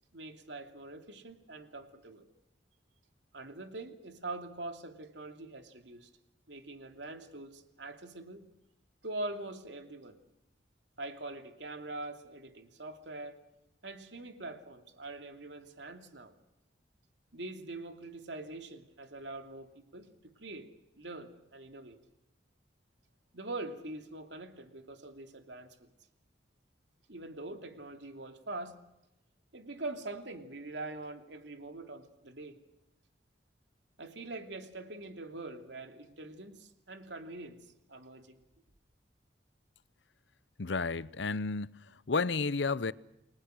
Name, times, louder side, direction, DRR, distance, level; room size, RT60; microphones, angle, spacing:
voice 1, 0.1-2.2 3.3-6.1 6.5-8.4 9.0-10.2 11.0-13.4 13.8-16.3 17.3-20.7 20.9-22.0 23.3-25.9 27.1-28.8 29.5-32.6 34.0-38.4, right 2 dB, 80° right, 2.9 m, -43 dB
voice 2, 40.6-42.9, left 4 dB, 80° left, 0.8 m, -32 dB
29.5 x 21.0 x 6.4 m
head